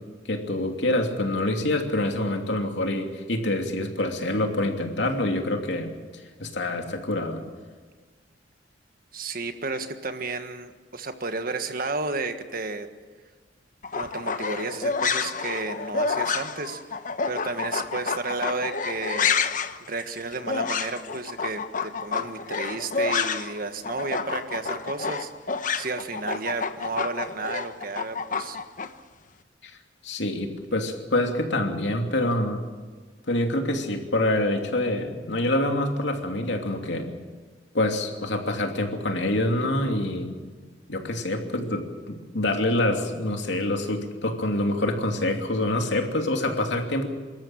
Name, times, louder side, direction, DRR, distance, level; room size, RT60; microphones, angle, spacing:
voice 1, 0.2-5.9 6.4-7.4 29.6-29.7 30.0-32.6 33.3-37.1 37.7-40.3 40.9-47.1, left 1 dB, 70° left, 3 dB, 2.9 m, -26 dB
voice 2, 9.1-12.9 13.9-16.8 17.3-19.4 19.9-28.6, right 3 dB, 50° right, 8 dB, 1.6 m, -32 dB
sound 1, 13.8-23.6 23.8-28.9, left 5 dB, 45° left, 1.0 m, -29 dB
26.0 x 13.5 x 8.8 m, 1.4 s
head